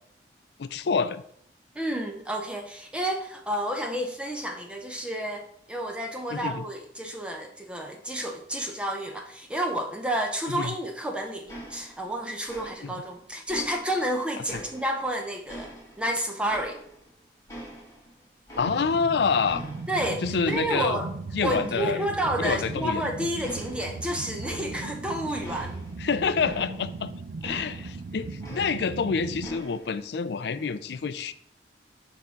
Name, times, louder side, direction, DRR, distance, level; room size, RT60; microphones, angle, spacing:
voice 1, 0.6-1.2 6.3-6.6 10.5-10.7 12.8-12.9 14.5-14.6 18.6-19.6 20.2-21.0 21.3-22.1 22.4-23.0 26.0-27.1 27.4-31.3, left 5 dB, 65° left, 13 dB, 0.4 m, -27 dB
voice 2, 1.7-16.8 19.9-21.1 21.4-25.8, right 1 dB, 5° right, 2 dB, 0.6 m, -30 dB
sound 1, 11.5-12.2 12.5-13.1 13.5-15.1 15.5-17.1 17.5-19.1 19.4-20.1 20.4-21.1 21.4-22.0 22.4-23.1 23.4-27.0 27.4-29.1 29.4-30.0, right 1 dB, 15° left, 1.7 m, -44 dB
sound 2, 18.6-29.5, right 3 dB, 65° right, 0.5 m, -38 dB
6.4 x 3.5 x 5.8 m, 0.66 s
head